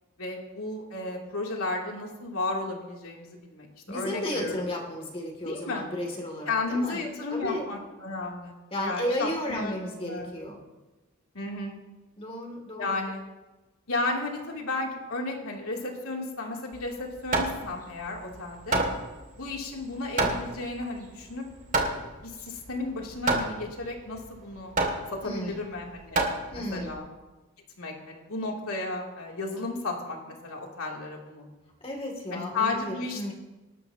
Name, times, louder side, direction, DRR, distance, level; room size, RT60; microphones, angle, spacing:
voice 1, 0.2-4.6 5.4-5.8 6.5-9.8 10.0-10.3 11.3-11.8 12.8-13.2 13.9-18.8 19.4-21.5 22.2-24.7 25.1-26.2 26.5-27.0 27.8-31.5 32.3-33.3, left 3 dB, 85° left, -1 dB, 2.9 m, -33 dB
voice 2, 3.9-7.0 7.3-7.7 8.7-10.6 12.2-13.0 25.2-25.6 26.5-27.0 31.8-33.3, left 1 dB, 25° left, 1 dB, 2.6 m, -33 dB
Hammer, 16.7-26.9, right 2 dB, 35° right, 2.2 m, -30 dB
26.5 x 13.0 x 2.9 m, 1.2 s
head